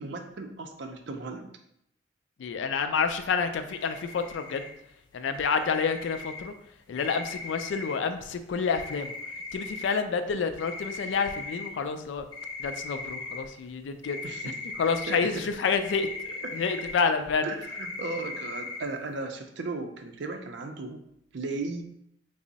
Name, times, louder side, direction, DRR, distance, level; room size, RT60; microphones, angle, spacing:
voice 1, 0.0-1.5 14.2-14.6 15.1-15.5 16.4-16.6 17.4-21.0 21.3-21.8, right 3 dB, 70° right, 5 dB, 0.5 m, -36 dB
voice 2, 2.4-4.7 5.1-6.5 6.9-9.1 9.5-12.2 12.6-14.2 14.8-17.5, left 5 dB, 75° left, 9 dB, 0.3 m, -28 dB
sound 1, 3.7-4.7 5.3-6.4 7.0-7.9 8.6-9.9 10.6-11.7 12.3-13.4 14.0-15.2 15.8-16.9 17.3-17.4 17.6-18.8, left 3 dB, 25° left, 0.7 m, -38 dB
3.4 x 2.0 x 3.9 m, 0.76 s
head